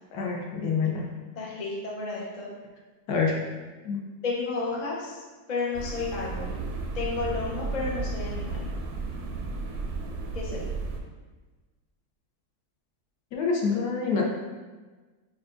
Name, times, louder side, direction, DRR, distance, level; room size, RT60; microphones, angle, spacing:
voice 1, 0.1-1.1 3.1-3.4 3.8-4.0 13.3-14.2, left 5 dB, 80° left, 0 dB, 1.2 m, -26 dB
voice 2, 1.4-2.5 4.2-5.1 5.5-6.6 6.9-8.7 10.3-10.6, left 4 dB, 50° left, -4 dB, 0.5 m, -32 dB
sound 1, 5.7-11.0, right 3 dB, 75° right, 1.1 m, -33 dB
5.6 x 2.3 x 2.5 m, 1.3 s
omnidirectional pair, 1.7 m